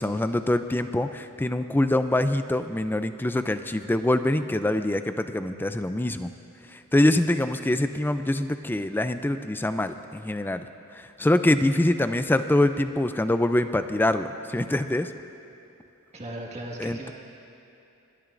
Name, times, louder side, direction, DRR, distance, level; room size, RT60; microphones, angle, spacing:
voice 1, 0.0-6.3 6.7-10.7 11.0-15.1 16.8-17.1, left 1 dB, 10° left, 10 dB, 0.4 m, -24 dB
voice 2, 16.1-17.1, right 1 dB, 30° right, -2 dB, 1.7 m, -37 dB
29.5 x 12.0 x 2.6 m, 2.8 s
head